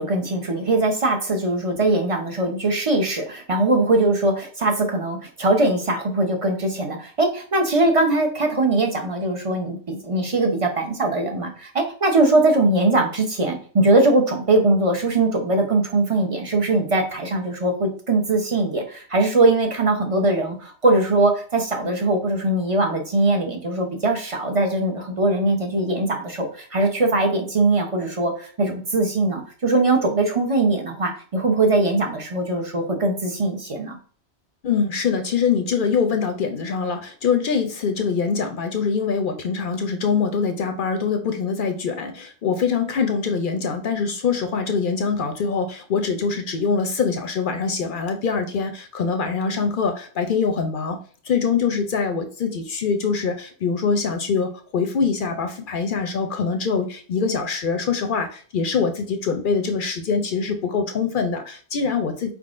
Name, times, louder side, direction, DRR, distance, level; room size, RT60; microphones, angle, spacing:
voice 1, 0.0-34.0, right 2 dB, 35° right, 2 dB, 0.7 m, -21 dB
voice 2, 34.6-51.0 51.2-62.3, left 5 dB, 55° left, 6 dB, 0.6 m, -24 dB
4.6 x 3.7 x 2.5 m, 0.43 s
omnidirectional pair, 1.2 m